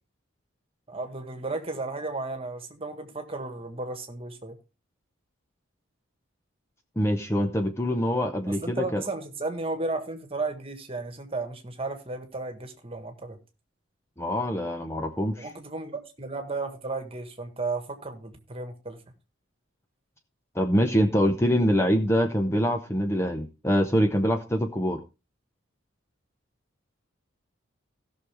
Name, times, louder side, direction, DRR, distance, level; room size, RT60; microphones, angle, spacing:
voice 1, 0.9-4.6 8.5-13.4 15.2-19.0, right 3 dB, 25° right, 6 dB, 1.6 m, -34 dB
voice 2, 7.0-9.0 14.2-15.5 20.6-25.0, equal, 15° left, 6 dB, 0.7 m, -24 dB
17.0 x 6.3 x 3.5 m, 0.29 s
head